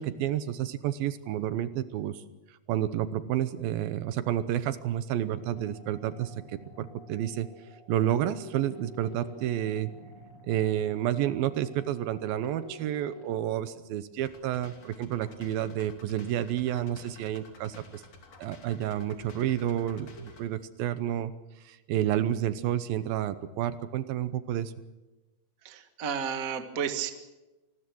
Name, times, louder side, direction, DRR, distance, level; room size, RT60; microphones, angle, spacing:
voice 1, 0.0-2.2 2.7-7.5 7.9-9.9 10.5-18.0 18.4-21.3 21.6-24.7, right 11 dB, 75° right, 13 dB, 2.6 m, -30 dB
sound 1, 5.4-13.4, equal, 30° left, 8.2 m, -50 dB
sound 2, 14.2-20.5, left 3 dB, 45° left, 3.5 m, -51 dB
voice 2, 25.6-27.1, right 7 dB, 50° right, 7 dB, 1.0 m, -32 dB
26.0 x 20.0 x 6.2 m, 1.1 s
omnidirectional pair, 4.5 m